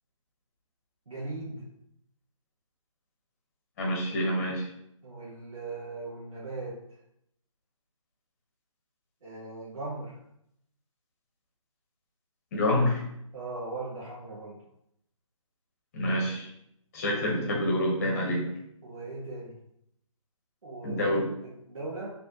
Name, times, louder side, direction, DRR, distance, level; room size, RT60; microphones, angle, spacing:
voice 1, 1.1-1.7 5.0-6.8 9.2-10.2 13.3-14.6 17.1-17.4 18.8-19.6 20.6-21.2 21.7-22.1, right 2 dB, 70° right, -8 dB, 1.5 m, -38 dB
voice 2, 3.8-4.6 12.5-13.0 15.9-16.5 16.9-18.5 20.8-21.3, left 1 dB, 25° left, -2 dB, 1.1 m, -27 dB
4.2 x 3.3 x 2.9 m, 0.76 s
figure-of-eight pair, 155°, 17 cm